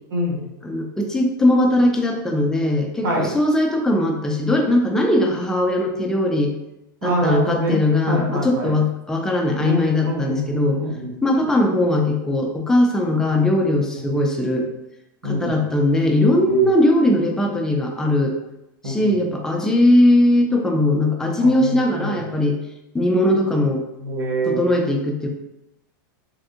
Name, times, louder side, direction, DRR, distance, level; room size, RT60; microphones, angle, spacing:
voice 1, 0.1-0.4 3.0-3.3 7.0-7.8 8.1-8.7 9.6-11.1 15.2-15.6 16.5-16.7 18.8-19.1 21.4-22.2 24.0-24.6, equal, 80° right, -2 dB, 1.2 m, -25 dB
voice 2, 0.6-6.5 7.0-10.8 11.2-14.7 15.2-18.3 18.8-22.6 22.9-23.8 24.4-25.3, left 1 dB, 5° left, 1 dB, 0.3 m, -19 dB
3.4 x 2.6 x 2.5 m, 0.92 s
supercardioid pair, 150°, 11 cm